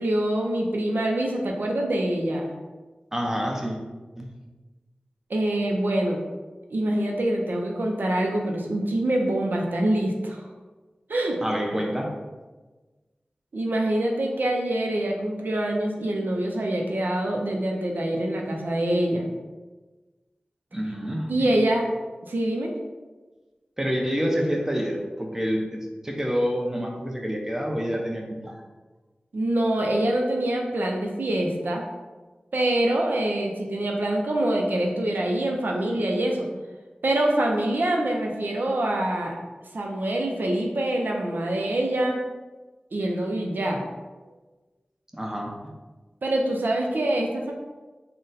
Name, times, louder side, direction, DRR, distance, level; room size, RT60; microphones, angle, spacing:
voice 1, 0.0-2.5 5.3-6.2 6.7-10.5 11.1-11.4 13.5-19.2 21.3-21.8 22.3-22.7 29.3-31.8 32.5-36.5 37.0-39.3 39.7-42.2 42.9-43.8 46.2-47.5, right 1 dB, 85° right, 0 dB, 0.5 m, -25 dB
voice 2, 3.1-3.8 4.2-4.3 11.4-12.1 20.7-21.5 23.8-28.6 44.2-44.3 45.1-45.5, equal, 15° right, 0 dB, 0.7 m, -27 dB
3.8 x 2.1 x 3.9 m, 1.2 s
wide cardioid pair, 50°, 3 cm